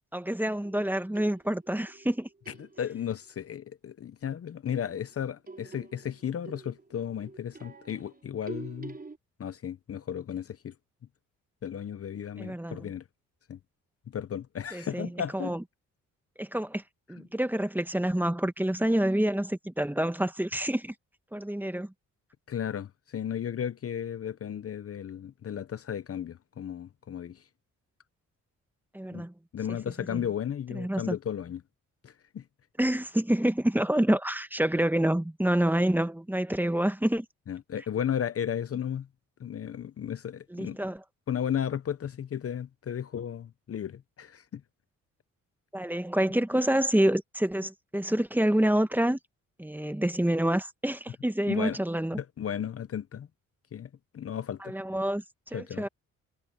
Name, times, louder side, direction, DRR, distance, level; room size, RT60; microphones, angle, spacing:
voice 1, 0.1-2.3 12.4-12.9 14.7-15.6 16.4-16.8 17.1-20.9 21.3-21.9 28.9-29.3 29.7-29.8 30.1-30.3 30.7-31.2 32.8-37.2 40.5-41.0 45.7-49.2 49.6-52.2 54.6-55.9, right 1 dB, 5° right, 1.3 m, -27 dB
sound 1, 0.6-3.1 4.7-9.2, right 3 dB, 30° right, 6.2 m, -47 dB
voice 2, 2.8-9.0 9.4-10.7 11.6-13.0 13.5-13.6 14.1-15.5 22.5-27.4 29.1-29.2 29.5-31.6 32.0-32.4 37.5-39.1 39.4-40.8 41.3-44.6 51.5-51.8 52.2-53.3 53.7-54.7 55.5-55.8, left 9 dB, 45° left, 0.8 m, -34 dB
cardioid pair, 80°, 32 cm